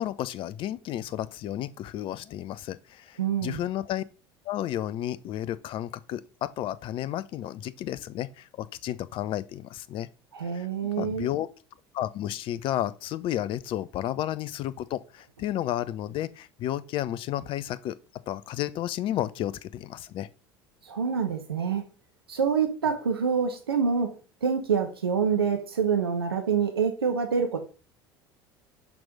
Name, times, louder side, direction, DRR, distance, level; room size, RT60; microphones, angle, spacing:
voice 1, 0.0-4.0 4.4-10.1 10.5-10.7 11.0-11.5 11.9-18.0 18.3-20.3, left 12 dB, 45° left, 0.6 m, -32 dB
voice 2, 3.2-3.6 10.3-11.3 20.8-21.8 22.3-27.6, right 6 dB, 80° right, 1.0 m, -26 dB
6.0 x 4.8 x 5.4 m
figure-of-eight pair, 65°, 13 cm